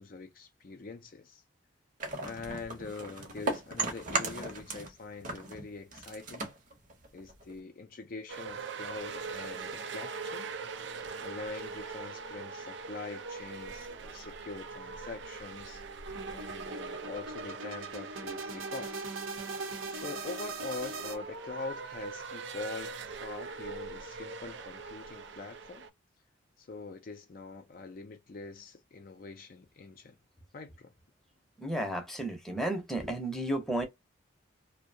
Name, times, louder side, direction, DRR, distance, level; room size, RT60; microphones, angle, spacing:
voice 1, 0.0-1.4 2.2-6.5 7.1-10.5 11.2-15.8 16.3-19.0 19.9-25.9 26.6-30.2 30.5-30.9, left 3 dB, 45° left, 0.4 m, -44 dB
sound 1, 2.0-4.9 5.2-7.6, right 2 dB, 40° right, 0.8 m, -36 dB
sound 2, 8.3-25.9, right 4 dB, 65° right, 0.4 m, -42 dB
sound 3, 16.0-21.2, right 3 dB, 90° right, 0.8 m, -40 dB
voice 2, 31.6-33.9, right 1 dB, ahead, 0.7 m, -33 dB
2.6 x 2.1 x 2.6 m
head